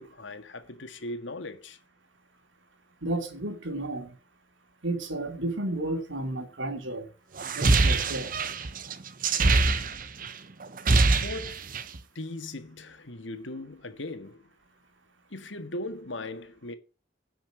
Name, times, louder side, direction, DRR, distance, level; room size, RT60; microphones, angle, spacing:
voice 1, 0.0-1.8 11.1-11.6 12.2-14.4 15.3-16.7, left 2 dB, 80° left, 1.8 m, -38 dB
voice 2, 3.0-4.1 4.8-7.1 7.5-8.3, right 2 dB, 90° right, 2.7 m, -32 dB
sound 1, 7.4-10.3 10.6-12.0, right 3 dB, 45° right, 0.9 m, -24 dB
11.0 x 5.9 x 7.6 m
head